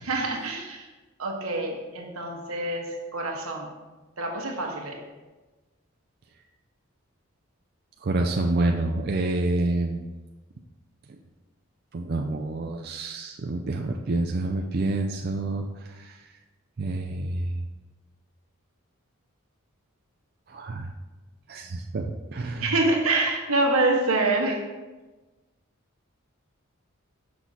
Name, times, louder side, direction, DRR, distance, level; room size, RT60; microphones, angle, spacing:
voice 1, 0.0-0.9 1.2-3.7 4.2-5.0 22.6-24.6, right 2 dB, 85° right, 1 dB, 1.3 m, -26 dB
voice 2, 8.0-10.0 11.9-16.2 16.8-17.6 20.5-20.9 21.5-22.7, right 2 dB, 45° right, 2 dB, 0.4 m, -28 dB
6.1 x 6.1 x 4.0 m, 1.2 s
head